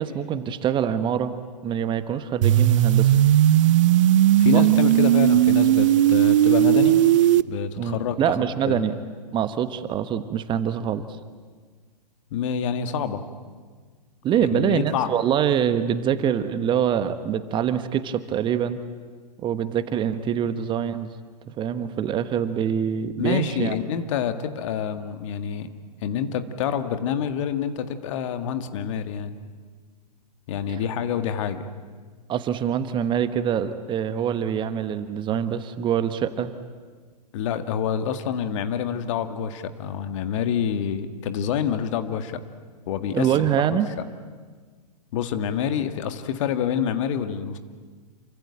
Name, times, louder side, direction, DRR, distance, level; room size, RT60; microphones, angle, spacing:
voice 1, 0.0-1.3 1.6-3.2 4.5-4.6 7.8-8.9 9.3-11.0 14.2-18.8 19.4-21.1 21.5-23.7 30.7-30.8 32.3-36.5 43.1-43.9, right 9 dB, 20° right, 11 dB, 1.2 m, -25 dB
sound 1, 2.4-7.4, right 12 dB, 50° right, 0.8 m, -17 dB
voice 2, 4.4-7.0 7.5-8.2 8.7-8.9 12.3-13.2 14.4-15.1 23.2-25.7 26.0-29.3 30.5-31.7 37.3-42.4 42.9-43.5 45.1-47.6, left 8 dB, 45° left, 9 dB, 2.0 m, -27 dB
27.5 x 24.5 x 8.7 m, 1.5 s
figure-of-eight pair, 110°, 21 cm